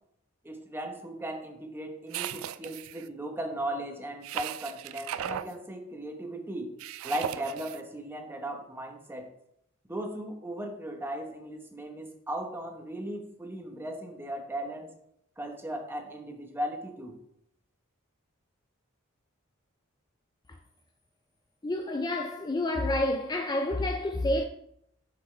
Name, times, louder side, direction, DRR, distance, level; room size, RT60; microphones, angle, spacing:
voice 1, 0.4-6.8 7.0-9.3 9.9-14.9 15.4-17.2, right 1 dB, 10° right, 1.0 m, -37 dB
sound 1, 2.1-3.1 4.2-5.5 6.8-7.8, right 10 dB, 70° right, 0.3 m, -37 dB
voice 2, 21.6-24.4, left 1 dB, 20° left, 0.4 m, -29 dB
7.9 x 6.0 x 3.2 m
head